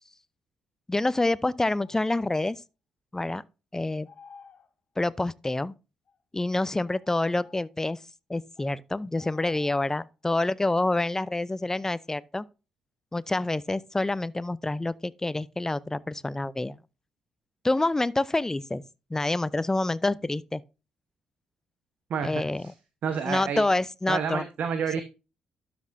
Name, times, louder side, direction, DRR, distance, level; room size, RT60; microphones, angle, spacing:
voice 1, 0.9-2.6 3.1-3.4 3.7-4.1 5.0-5.7 6.3-8.0 8.3-12.4 13.1-16.8 17.6-18.8 19.1-20.6 22.2-22.6 23.3-24.4, left 2 dB, 15° left, 0.5 m, -27 dB
sound 1, 1.8-2.3 4.0-4.7 6.1-6.2 6.7-7.7 8.5-8.7 9.2-10.1, left 6 dB, 50° left, 1.3 m, -53 dB
voice 2, 23.0-23.6 24.1-25.0, right 6 dB, 60° right, 1.0 m, -29 dB
12.0 x 6.1 x 2.6 m
hypercardioid pair, 40°, 3 cm